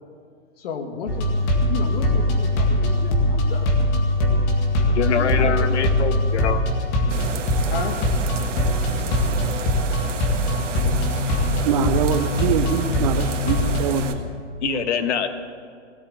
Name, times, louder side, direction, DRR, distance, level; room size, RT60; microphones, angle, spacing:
voice 1, 0.6-1.3 1.7-3.7 4.8-5.8 7.7-8.0 11.7-11.9, left 5 dB, 50° left, 5 dB, 2.1 m, -33 dB
sound 1, 1.1-14.0, left 1 dB, 35° left, 2.1 m, -22 dB
voice 2, 4.9-6.6 14.6-15.3, left 7 dB, 70° left, 9 dB, 1.3 m, -24 dB
sound 2, 7.1-14.1, right 6 dB, 80° right, 1.6 m, -32 dB
voice 3, 11.7-14.3 14.6-14.9, right 9 dB, 35° right, 10 dB, 0.5 m, -24 dB
17.5 x 8.0 x 9.2 m, 2.2 s
hypercardioid pair, 155°, 36 cm